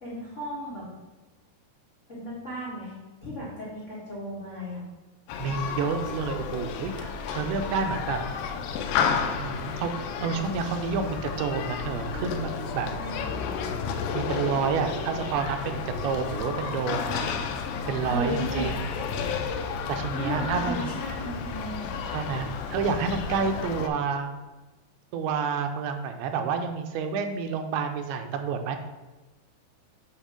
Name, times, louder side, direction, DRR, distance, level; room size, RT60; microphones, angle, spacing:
voice 1, 0.0-0.9 2.1-2.9 3.2-4.8 12.9-13.6 18.1-18.7 20.1-21.9, equal, 65° left, -7 dB, 0.7 m, -35 dB
Human group actions, 5.3-23.9, left 6 dB, 85° left, 2.0 m, -32 dB
voice 2, 5.4-8.2 9.3-9.9 10.2-12.9 14.1-17.3 17.9-18.8 19.1-19.4 19.9-20.9 22.1-24.3 25.1-28.8, right 5 dB, 85° right, 6 dB, 2.6 m, -29 dB
8.4 x 3.0 x 5.0 m, 1.2 s
omnidirectional pair, 4.5 m